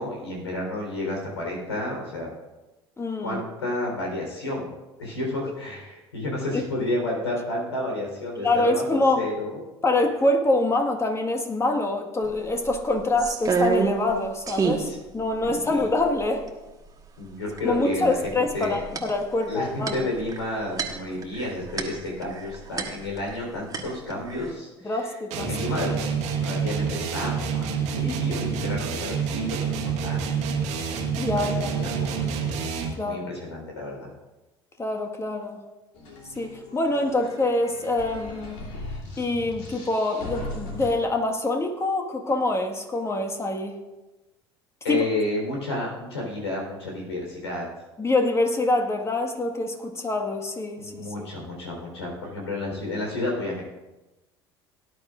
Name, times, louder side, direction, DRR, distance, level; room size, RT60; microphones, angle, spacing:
voice 1, 0.0-2.3 3.2-4.7 5.0-9.7 14.8-15.0 15.4-15.9 17.2-18.8 19.5-25.2 25.5-26.1 26.4-30.3 31.3-32.4 33.0-34.1 44.8-47.7 50.8-53.6, left 2 dB, 80° left, -1 dB, 4.1 m, -31 dB
voice 2, 3.0-3.4 6.5-6.6 8.4-9.2 9.8-16.5 17.6-20.1 24.8-25.5 28.0-28.2 31.2-32.0 33.0-33.3 34.8-35.6 36.4-38.6 39.2-43.8 44.9-45.0 48.0-51.0, left 2 dB, 20° left, 3 dB, 1.7 m, -25 dB
sound 1, 12.2-12.3 12.6-14.2 14.5-14.9 15.4-15.5 15.8-16.5 17.6-17.9 18.2-23.4 23.7-24.5, right 5 dB, 25° right, 1.6 m, -28 dB
sound 2, 25.3-33.1, right 6 dB, 60° right, 1.7 m, -27 dB
sound 3, 35.9-41.0, left 2 dB, 60° left, 3.3 m, -38 dB
18.0 x 10.5 x 2.6 m, 1.1 s
figure-of-eight pair, 65°, 14 cm